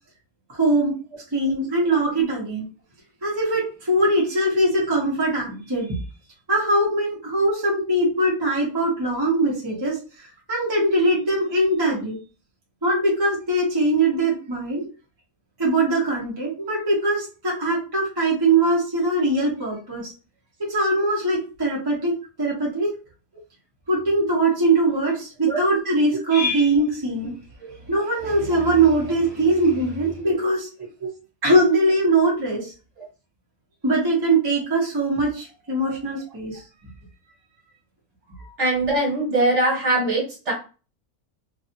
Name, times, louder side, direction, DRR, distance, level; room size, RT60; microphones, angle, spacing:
voice 1, 0.5-1.0 1.3-2.7 3.2-6.0 6.5-10.0 10.5-12.2 12.8-14.8 15.6-20.1 20.6-22.9 23.9-27.3 27.9-30.7 31.4-32.7 33.8-36.6 38.4-38.5, right 2 dB, 20° right, -5 dB, 0.8 m, -21 dB
voice 2, 38.6-40.5, right 2 dB, 55° right, -3 dB, 1.5 m, -22 dB
2.7 x 2.4 x 2.7 m, 0.34 s
omnidirectional pair, 1.5 m